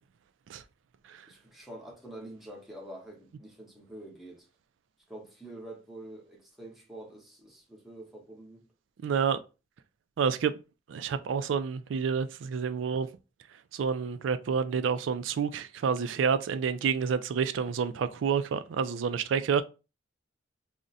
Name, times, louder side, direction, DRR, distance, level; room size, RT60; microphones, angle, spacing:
voice 1, 1.3-4.5 5.1-8.7, right 1 dB, ahead, 0.8 m, -46 dB
voice 2, 9.0-9.4 10.2-10.5 10.9-13.1 13.7-19.6, right 6 dB, 75° right, 0.3 m, -29 dB
2.4 x 2.1 x 3.9 m
head